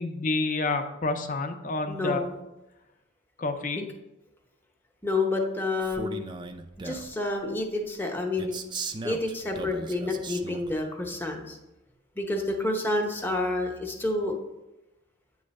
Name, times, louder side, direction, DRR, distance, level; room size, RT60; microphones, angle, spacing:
voice 1, 0.0-2.2 3.4-3.9, left 3 dB, 40° left, 8 dB, 0.6 m, -29 dB
voice 2, 1.9-2.4 5.0-6.3 6.8-8.6 9.0-11.6 12.2-14.4, left 2 dB, 10° left, 2 dB, 0.8 m, -29 dB
Male speech man speaking, 5.8-7.2 8.4-10.8, right 4 dB, 20° right, 0.4 m, -37 dB
8.7 x 3.2 x 5.2 m, 1.0 s
head